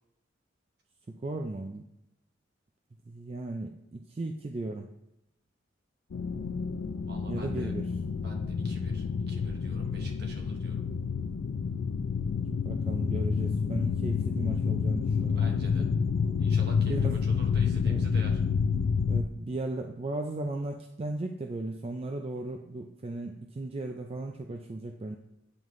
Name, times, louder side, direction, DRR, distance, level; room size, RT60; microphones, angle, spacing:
voice 1, 1.1-1.8 3.1-4.9 7.3-7.8 12.5-15.9 16.8-17.2 17.8-18.0 19.1-25.2, right 2 dB, 30° right, 3 dB, 0.4 m, -36 dB
sound 1, 6.1-19.2, left 6 dB, 70° left, 0.4 m, -29 dB
voice 2, 7.1-7.7 8.2-10.8 15.3-15.9 16.4-18.4, right 1 dB, 60° right, 1 dB, 1.1 m, -47 dB
8.8 x 3.8 x 3.1 m, 0.84 s
head